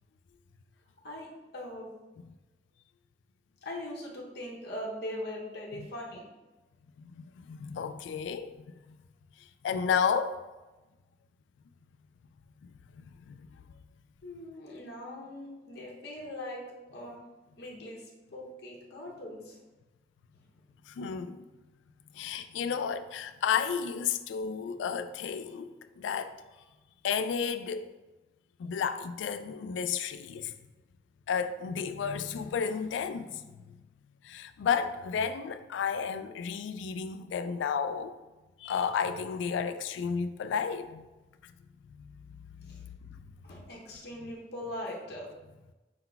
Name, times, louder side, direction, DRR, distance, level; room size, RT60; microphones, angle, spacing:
voice 1, 1.5-1.9 3.6-6.3 14.2-17.2 17.6-19.6 22.1-22.2 24.4-24.8 42.7-42.8 43.4-45.3, left 1 dB, 60° left, 0.8 m, -41 dB
voice 2, 7.0-8.6 8.9-9.0 9.6-10.4 12.6-13.5 20.9-21.5 22.1-26.3 27.0-27.9 28.6-30.5 31.3-33.8 34.2-38.1 38.6-41.1 41.9-42.1 42.7-42.8, left 6 dB, 90° left, 0.3 m, -32 dB
5.4 x 3.9 x 2.3 m
head